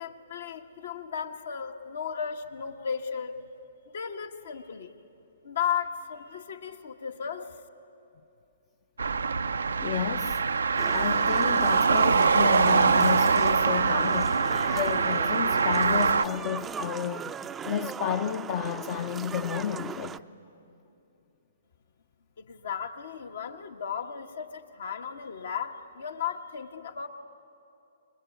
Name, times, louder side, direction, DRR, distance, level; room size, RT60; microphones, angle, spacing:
voice 1, 0.0-3.4 3.9-4.9 5.4-7.6 22.4-27.1, left 7 dB, 70° left, 1.6 m, -35 dB
sound 1, 9.0-16.3, right 5 dB, 80° right, 0.5 m, -23 dB
voice 2, 9.8-10.4 10.9-14.4 14.7-17.4 17.6-20.2, left 9 dB, 45° left, 0.7 m, -31 dB
sound 2, 10.8-20.2, right 7 dB, 15° right, 0.5 m, -38 dB
24.0 x 22.0 x 9.4 m
hypercardioid pair, 130°, 0 cm